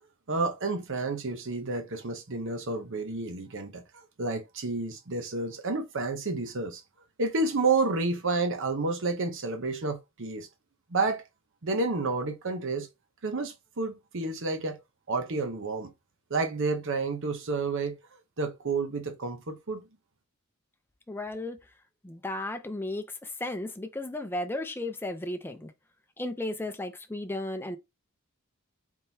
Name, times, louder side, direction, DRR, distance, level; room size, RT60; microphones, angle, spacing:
voice 1, 0.3-6.8 7.2-10.5 10.9-11.2 11.6-12.9 13.2-14.8 15.1-15.9 16.3-18.0 18.4-19.8, right 3 dB, 60° right, 0.8 m, -30 dB
voice 2, 21.1-21.7 22.0-25.7 26.2-27.8, left 1 dB, 10° left, 0.6 m, -34 dB
4.4 x 3.7 x 2.7 m
head